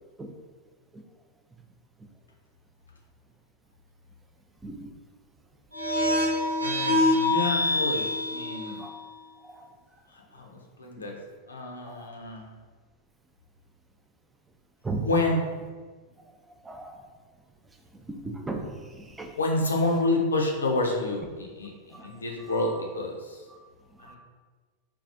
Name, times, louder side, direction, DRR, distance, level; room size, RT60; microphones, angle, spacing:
sound 1, 5.7-9.0, left 2 dB, 85° right, 0.6 m, -25 dB
voice 1, 6.6-8.8 10.3-11.2 11.5-12.5 15.0-15.4 19.4-23.4 24.0-24.2, left 2 dB, 75° left, 0 dB, 0.5 m, -28 dB
voice 2, 16.6-17.0 18.1-18.7 19.0-19.3 21.9-22.1 24.1-24.2, right 3 dB, 10° right, 3 dB, 0.4 m, -35 dB
4.0 x 2.3 x 2.6 m, 1.4 s
figure-of-eight pair, 90°, 0 cm